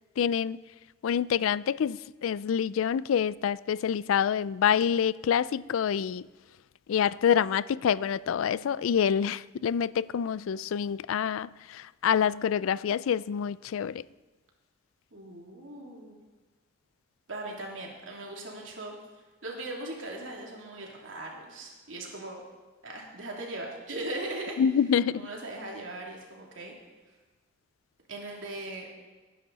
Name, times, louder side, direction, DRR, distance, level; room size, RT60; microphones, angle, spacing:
voice 1, 0.2-0.6 1.0-6.2 6.9-14.0 24.6-25.1, left 8 dB, 85° left, 0.3 m, -27 dB
voice 2, 15.1-16.2 17.3-18.9 19.4-22.4 22.8-24.6 25.1-26.7 28.1-28.9, right 2 dB, 70° right, 3.0 m, -39 dB
18.5 x 10.0 x 4.1 m
head